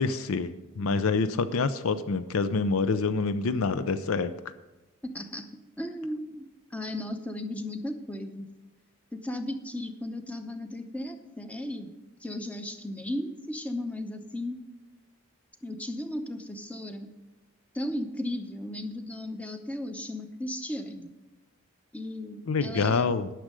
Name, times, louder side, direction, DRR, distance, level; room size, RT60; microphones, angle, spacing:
voice 1, 0.0-4.3 22.5-23.3, left 4 dB, 70° left, 12 dB, 0.5 m, -26 dB
voice 2, 5.0-5.5 5.8-6.4 6.7-8.5 9.1-11.9 12.2-14.6 15.6-17.1 17.7-21.1 21.9-23.2, left 1 dB, 5° left, 7 dB, 0.7 m, -35 dB
10.0 x 6.2 x 7.5 m, 1.1 s
head